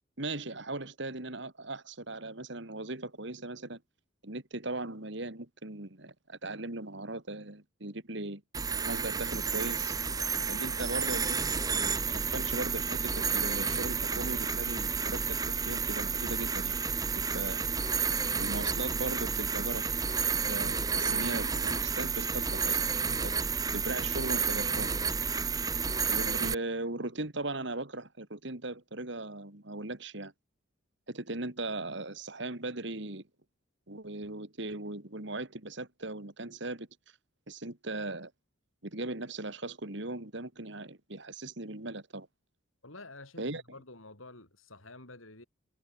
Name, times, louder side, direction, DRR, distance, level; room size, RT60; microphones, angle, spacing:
voice 1, 0.2-3.8 4.2-8.4 8.9-9.9 10.5-16.8 17.3-17.6 18.3-19.9 20.1-21.5 21.8-22.8 23.2-23.3 23.7-24.9 26.1-30.3 31.1-33.2 33.9-36.9 37.5-38.3 38.8-42.3 43.4-43.6, right 2 dB, 60° right, 2.4 m, -38 dB
sound 1, 8.5-26.5, right 5 dB, 20° right, 0.7 m, -31 dB
voice 2, 42.8-45.4, left 2 dB, 80° left, 5.8 m, -50 dB
head